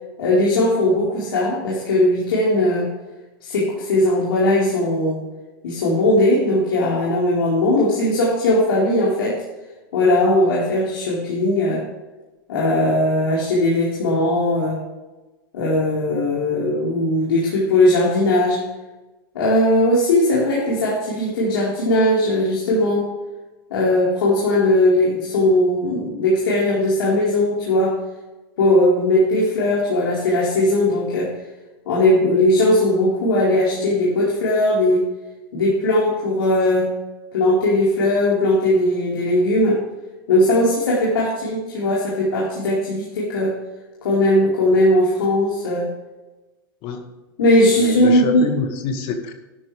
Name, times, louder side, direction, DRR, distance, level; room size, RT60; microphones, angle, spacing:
voice 1, 0.2-2.9 3.4-5.2 5.6-9.4 9.9-11.8 12.5-14.8 15.5-18.6 19.3-23.1 23.7-28.0 28.6-31.3 31.9-35.1 35.5-36.9 37.3-39.8 40.3-43.5 44.0-45.9 47.4-48.4, left 1 dB, 80° left, -6 dB, 4.5 m, -18 dB
voice 2, 47.8-49.3, left 6 dB, 50° left, 5 dB, 2.1 m, -26 dB
12.5 x 11.5 x 3.4 m, 1.1 s
hypercardioid pair, 120°, 12 cm